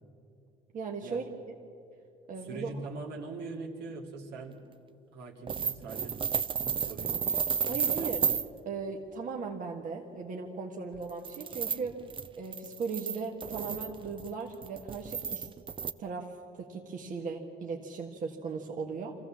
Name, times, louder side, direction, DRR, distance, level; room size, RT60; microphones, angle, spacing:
voice 1, 0.7-1.6 2.3-2.9 7.7-8.2 8.6-11.9 12.4-15.5 16.0-19.2, right 4 dB, 50° right, 0 dB, 1.6 m, -38 dB
voice 2, 2.4-4.6 5.1-6.2 6.6-7.2 7.7-8.1, right 3 dB, 75° right, 1 dB, 2.5 m, -42 dB
sound 1, 5.5-8.5 10.9-15.9, right 6 dB, 30° right, 0.6 m, -32 dB
25.0 x 15.0 x 7.4 m, 2.5 s
cardioid pair, 110°, 17 cm